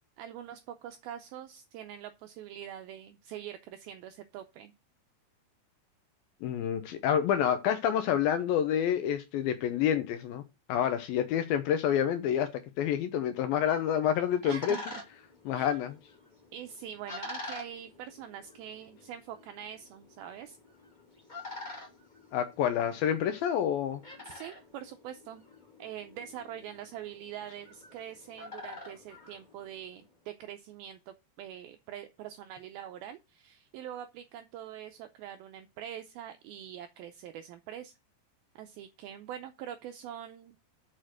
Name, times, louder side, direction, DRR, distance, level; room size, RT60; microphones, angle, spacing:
voice 1, 0.2-4.7 14.4-15.0 15.5-15.7 16.5-20.6 24.2-25.4 25.8-37.9 38.6-40.6, right 10 dB, 90° right, 2.1 m, -44 dB
voice 2, 6.4-10.4 10.7-12.5 12.8-14.8 15.5-16.0 22.3-24.0, left 9 dB, 80° left, 2.1 m, -28 dB
sound 1, 13.8-30.1, left 2 dB, 15° left, 1.7 m, -47 dB
6.5 x 5.8 x 6.3 m
omnidirectional pair, 5.0 m